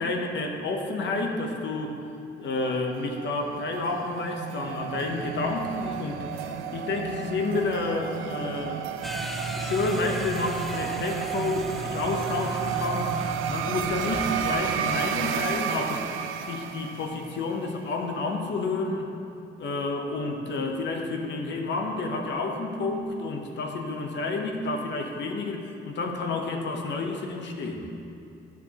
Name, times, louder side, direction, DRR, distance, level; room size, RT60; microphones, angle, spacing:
voice 1, 0.0-2.0 2.4-8.9 9.6-13.2 13.5-16.0 16.5-19.1 19.6-27.9, left 3 dB, 65° left, 3 dB, 0.8 m, -30 dB
sound 1, 2.8-17.5, right 8 dB, 90° right, 0.4 m, -32 dB
sound 2, 9.0-14.6, equal, ahead, 0.4 m, -36 dB
12.0 x 4.7 x 2.9 m, 2.6 s
cardioid pair, 90°, 20 cm